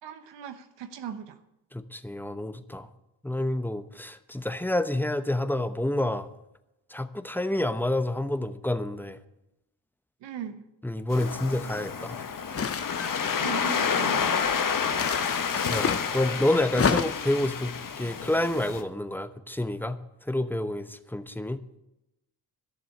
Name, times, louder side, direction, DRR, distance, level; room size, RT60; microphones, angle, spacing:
voice 1, 0.0-1.4 10.2-10.6 13.4-14.5, right 9 dB, 90° right, 8 dB, 1.1 m, -39 dB
voice 2, 1.7-2.9 3.2-6.3 6.9-9.2 10.8-12.2 15.7-21.6, left 1 dB, 5° left, 11 dB, 0.9 m, -28 dB
Waves surf, 11.1-18.8, left 6 dB, 50° left, 1.4 m, -29 dB
sound 1, 12.6-13.5 14.9-16.1 16.7-17.4, left 6 dB, 35° left, 0.8 m, -29 dB
12.5 x 7.0 x 8.5 m, 0.90 s
cardioid pair, 75°, 42 cm